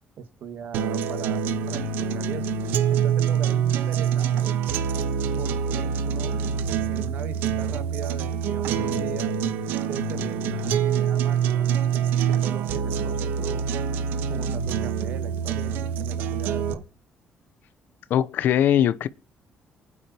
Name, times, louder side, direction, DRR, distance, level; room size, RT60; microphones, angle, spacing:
voice 1, 0.2-2.5 2.9-4.6 5.4-9.3 9.9-13.7 14.3-16.8, right 8 dB, 75° right, 1.9 m, -39 dB
sound 1, 0.7-16.7, right 7 dB, 90° right, 1.2 m, -25 dB
voice 2, 18.1-19.1, left 10 dB, 75° left, 0.8 m, -20 dB
27.5 x 9.8 x 3.0 m
cardioid pair, 85°, 3 cm